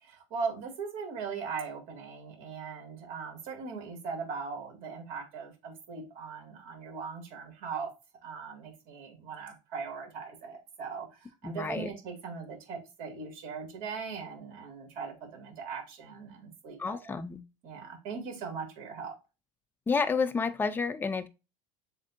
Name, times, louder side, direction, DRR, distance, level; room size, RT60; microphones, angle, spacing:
voice 1, 0.0-7.9 8.2-17.1 17.6-19.2, right 5 dB, 60° right, 2.3 m, -39 dB
voice 2, 11.4-11.9 16.8-17.4 19.9-21.3, left 5 dB, 10° left, 0.5 m, -30 dB
7.3 x 2.7 x 2.6 m
hypercardioid pair, 100°, 17 cm